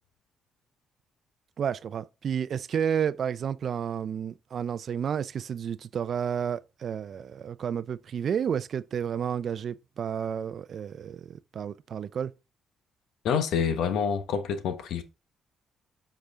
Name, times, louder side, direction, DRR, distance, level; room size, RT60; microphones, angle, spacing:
voice 1, 1.6-12.3, right 8 dB, 55° right, 0.4 m, -31 dB
voice 2, 13.2-15.0, left 7 dB, 80° left, 1.1 m, -27 dB
8.1 x 5.0 x 3.6 m
cardioid pair, 90°, 0 cm